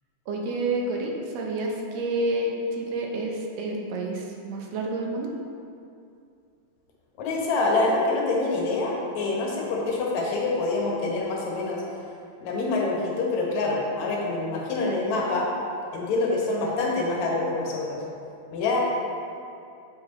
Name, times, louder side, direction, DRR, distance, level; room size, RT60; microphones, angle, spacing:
voice 1, 0.3-5.3, right 2 dB, 70° right, 0 dB, 1.9 m, -29 dB
voice 2, 7.2-11.8 12.4-15.5 15.9-18.0 18.5-18.8, left 3 dB, 75° left, -2 dB, 2.4 m, -26 dB
7.0 x 6.0 x 4.0 m, 2.5 s
omnidirectional pair, 3.3 m